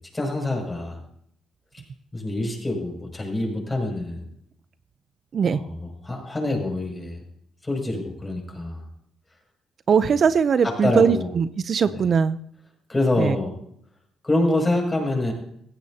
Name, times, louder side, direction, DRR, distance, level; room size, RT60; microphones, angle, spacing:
voice 1, 0.1-1.0 2.1-4.3 5.5-7.2 7.6-8.8 10.6-11.3 11.9-12.0 12.9-13.5 14.2-15.3, left 2 dB, 15° left, 0 dB, 6.7 m, -26 dB
voice 2, 9.9-12.4 13.2-13.4, right 6 dB, 50° right, 13 dB, 0.6 m, -20 dB
17.0 x 15.0 x 2.8 m, 0.70 s
cardioid pair, 90°, 0 cm